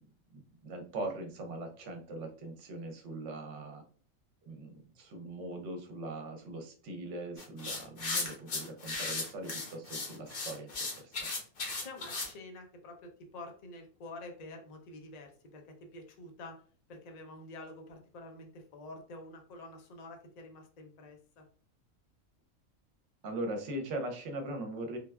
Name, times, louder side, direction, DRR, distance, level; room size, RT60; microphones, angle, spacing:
voice 1, 0.3-3.8 4.4-10.7 11.0-11.3 23.2-25.0, right 2 dB, 65° right, 4 dB, 0.9 m, -40 dB
Painting many short brush strokes, 7.4-12.3, left 3 dB, 50° left, 0.8 m, -36 dB
voice 2, 11.8-16.6 16.9-21.4, left 2 dB, 85° left, 3 dB, 0.3 m, -48 dB
3.2 x 2.2 x 2.2 m, 0.43 s
omnidirectional pair, 1.4 m